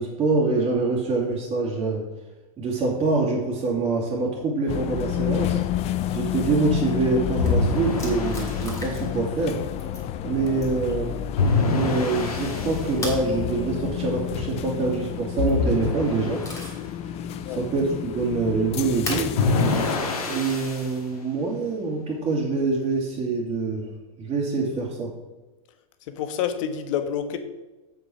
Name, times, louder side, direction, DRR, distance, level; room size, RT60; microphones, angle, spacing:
voice 1, 0.0-2.0 2.6-5.6 6.1-9.6 10.2-11.1 11.6-16.4 17.5-19.4 20.2-23.9 24.2-25.1, right 3 dB, 30° right, -7 dB, 2.6 m, -25 dB
sound 1, 4.7-20.0, left 11 dB, 35° left, 0.6 m, -30 dB
sound 2, 7.4-8.8 11.4-12.9 15.4-16.7 19.4-20.9, left 3 dB, 80° left, 2.1 m, -25 dB
sound 3, 7.4-7.5 8.0-9.2 9.5-10.1 10.6-10.9 13.0-13.3 15.2-15.6 16.0-16.9 17.4-17.5 19.0-19.3 20.4-20.5 22.6-23.0, left 1 dB, 15° left, 3.1 m, -36 dB
voice 2, 26.1-27.4, left 9 dB, 60° left, 8 dB, 1.3 m, -28 dB
8.0 x 5.8 x 6.1 m, 1.1 s
hypercardioid pair, 110°, 19 cm